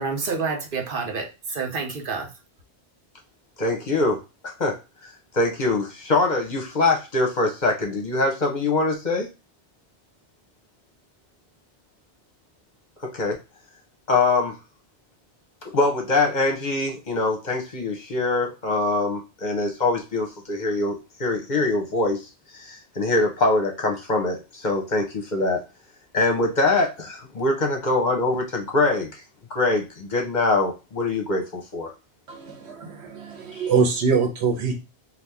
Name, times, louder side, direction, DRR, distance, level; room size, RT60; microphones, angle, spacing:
voice 1, 0.0-2.3, right 4 dB, 55° right, 2 dB, 0.9 m, -28 dB
voice 2, 3.6-4.8 5.0-9.3 13.0-13.4 14.1-14.6 15.7-25.6 26.1-29.2 29.5-31.9 33.5-33.7, left 2 dB, 50° left, 2 dB, 0.8 m, -23 dB
voice 3, 32.3-34.8, right 5 dB, 85° right, 3 dB, 1.1 m, -24 dB
2.8 x 2.4 x 3.4 m, 0.28 s
omnidirectional pair, 1.1 m